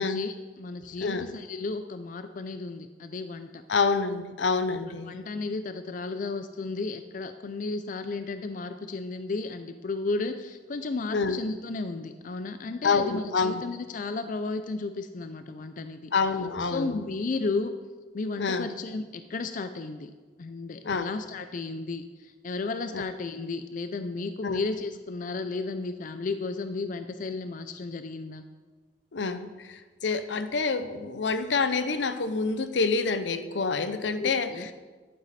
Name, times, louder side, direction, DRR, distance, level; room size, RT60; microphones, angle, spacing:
voice 1, 0.0-3.6 5.0-16.1 16.6-17.7 18.1-20.1 20.4-28.4 34.2-34.7, left 3 dB, 45° left, 9 dB, 0.4 m, -33 dB
voice 2, 3.7-5.2 11.1-11.4 12.8-13.6 16.1-17.0 18.4-18.7 20.8-21.1 22.9-23.0 24.4-24.6 29.1-34.7, left 4 dB, 80° left, 11 dB, 0.7 m, -27 dB
11.0 x 9.1 x 4.2 m, 1.4 s
head